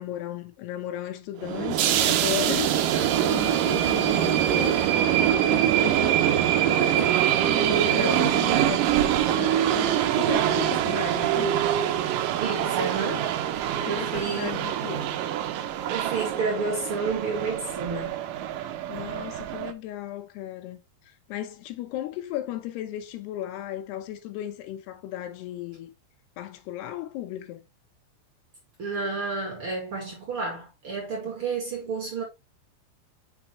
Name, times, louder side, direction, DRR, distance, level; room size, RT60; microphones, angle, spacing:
voice 1, 0.0-6.2 7.4-11.7 13.9-15.1 18.9-25.9 26.4-27.6, left 12 dB, 80° left, 2.8 m, -35 dB
sound 1, 1.4-19.7, right 11 dB, 90° right, 1.9 m, -24 dB
voice 2, 6.8-7.2 7.6-8.4 12.4-13.3 13.6-14.5 15.9-18.2 28.8-32.2, right 4 dB, 40° right, 2.3 m, -31 dB
6.4 x 6.0 x 3.1 m
omnidirectional pair, 4.8 m